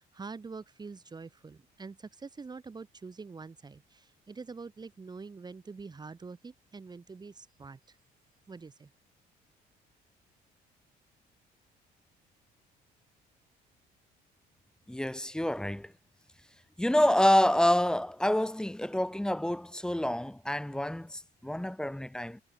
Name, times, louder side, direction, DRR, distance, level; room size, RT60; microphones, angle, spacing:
voice 1, 0.0-8.0 8.5-8.9, right 4 dB, 25° right, 4.1 m, -45 dB
voice 2, 14.9-15.9 16.8-22.4, left 1 dB, 5° left, 5.4 m, -27 dB
cardioid pair, 110°, 17 cm